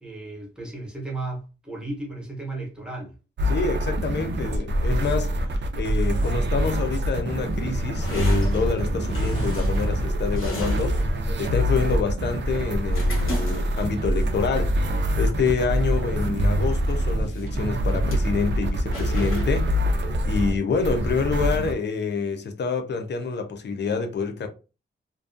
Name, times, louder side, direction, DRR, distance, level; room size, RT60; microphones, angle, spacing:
voice 1, 0.0-3.1, right 2 dB, 5° right, 0.8 m, -34 dB
sound 1, 3.4-21.7, equal, 60° right, 0.4 m, -25 dB
voice 2, 3.5-11.0 11.4-24.5, left 5 dB, 60° left, 0.5 m, -27 dB
sound 2, 7.9-19.4, equal, 85° left, 0.9 m, -36 dB
2.5 x 2.2 x 2.5 m
wide cardioid pair, 165°, 21 cm